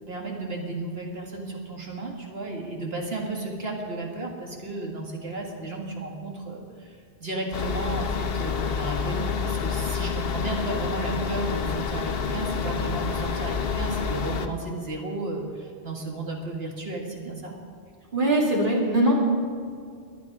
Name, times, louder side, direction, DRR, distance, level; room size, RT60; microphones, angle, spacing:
voice 1, 0.1-17.5, right 2 dB, 70° right, 0 dB, 2.2 m, -33 dB
sound 1, 7.5-14.5, left 6 dB, 65° left, 1.0 m, -28 dB
voice 2, 18.1-19.1, right 1 dB, 50° right, -3 dB, 2.9 m, -21 dB
22.0 x 9.6 x 5.0 m, 2.2 s
omnidirectional pair, 1.1 m